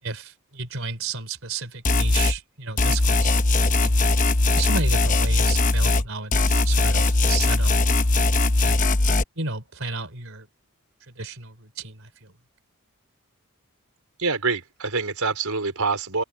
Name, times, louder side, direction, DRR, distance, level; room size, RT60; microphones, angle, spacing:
voice 1, 0.0-3.9 4.5-8.8 9.4-10.5 11.1-12.3, right 4 dB, 60° right, 4.5 m, -33 dB
sound 1, 1.8-2.4 2.8-6.1 6.3-9.2, left 2 dB, 35° left, 0.9 m, -20 dB
voice 2, 14.2-16.2, right 4 dB, 80° right, 4.6 m, -25 dB
open air
head